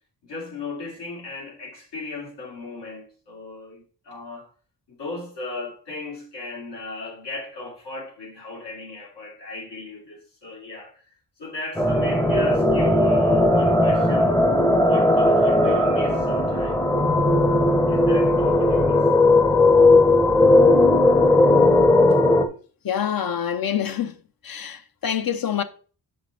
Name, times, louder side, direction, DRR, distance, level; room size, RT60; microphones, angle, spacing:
voice 1, 0.2-4.5 4.9-11.0 11.4-14.4 14.8-16.8 17.9-19.1, left 3 dB, 85° left, 3.0 m, -36 dB
sound 1, 11.8-22.5, left 2 dB, 5° left, 0.6 m, -17 dB
voice 2, 22.8-24.1 24.4-25.6, left 9 dB, 60° left, 0.7 m, -26 dB
7.5 x 5.5 x 3.8 m
wide cardioid pair, 125°, 40 cm